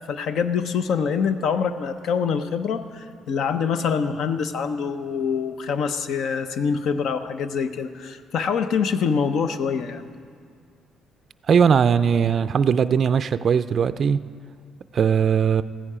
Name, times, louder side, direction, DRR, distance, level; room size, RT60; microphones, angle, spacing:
voice 1, 0.1-10.0, left 6 dB, 70° left, 10 dB, 0.7 m, -25 dB
voice 2, 11.5-14.2 14.9-15.6, right 7 dB, 50° right, 12 dB, 0.3 m, -19 dB
15.0 x 10.0 x 4.9 m, 2.1 s
cardioid pair, 90°, 0 cm